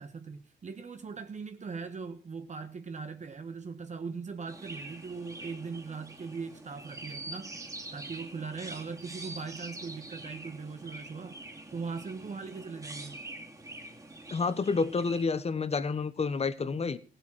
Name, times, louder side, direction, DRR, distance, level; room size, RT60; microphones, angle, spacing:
voice 1, 0.0-7.6 7.9-11.4 11.7-13.2, right 5 dB, 35° right, 1.2 m, -40 dB
Chirp tweet, 4.5-15.2, right 2 dB, 15° right, 2.5 m, -45 dB
voice 2, 14.3-17.0, left 4 dB, 30° left, 1.0 m, -29 dB
16.0 x 8.0 x 6.0 m
cardioid pair, 90°, 20 cm